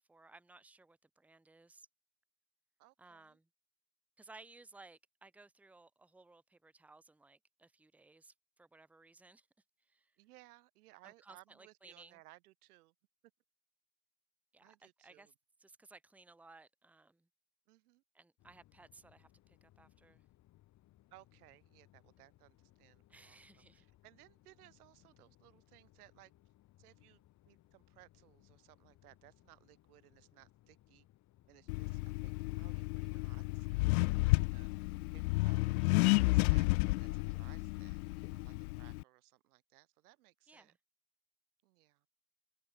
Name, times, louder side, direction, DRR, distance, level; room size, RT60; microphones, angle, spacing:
voice 1, 0.0-1.9 3.0-3.5 4.2-9.5 9.8-10.1 11.0-12.2 14.5-14.8 15.0-15.3 15.6-17.3 18.1-20.2 23.1-23.8 40.5-40.8, right 3 dB, 5° right, 1.3 m, -60 dB
voice 2, 2.8-3.4 10.2-12.9 14.6-15.3 17.7-18.0 21.1-23.4 23.7-26.3 26.8-31.1 31.5-34.7 35.1-40.7 41.6-42.0, right 18 dB, 85° right, 4.2 m, -63 dB
sound 1, 18.4-35.1, left 15 dB, 40° left, 7.6 m, -67 dB
Accelerating revving vroom, 31.7-39.0, left 24 dB, 75° left, 0.6 m, -32 dB
supercardioid pair, 150°, 44 cm